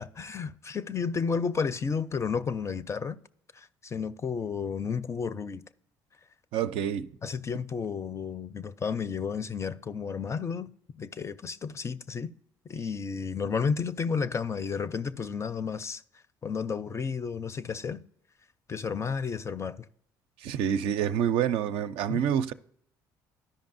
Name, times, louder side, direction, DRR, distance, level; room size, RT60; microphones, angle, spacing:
voice 1, 0.0-3.2 3.5-5.6 7.2-10.7 11.0-12.3 12.7-16.0 16.4-18.0 18.7-19.9 22.1-22.3, left 6 dB, 30° left, 0.5 m, -32 dB
voice 2, 6.5-7.1 20.4-22.5, right 9 dB, 70° right, 0.4 m, -27 dB
13.0 x 5.3 x 2.6 m
supercardioid pair, 70°, 10 cm